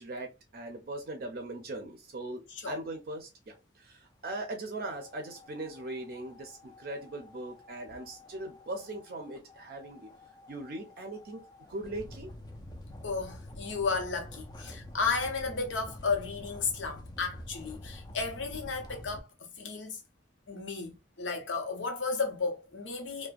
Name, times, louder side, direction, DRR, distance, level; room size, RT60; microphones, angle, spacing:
voice 1, 0.0-10.1 10.5-11.4 11.7-12.3, right 2 dB, 50° right, 0.5 m, -40 dB
sound 1, 4.8-19.2, left 1 dB, 20° left, 0.4 m, -48 dB
voice 2, 13.0-19.3 19.6-20.0 20.5-23.3, left 4 dB, 90° left, 0.8 m, -33 dB
2.4 x 2.1 x 2.4 m
head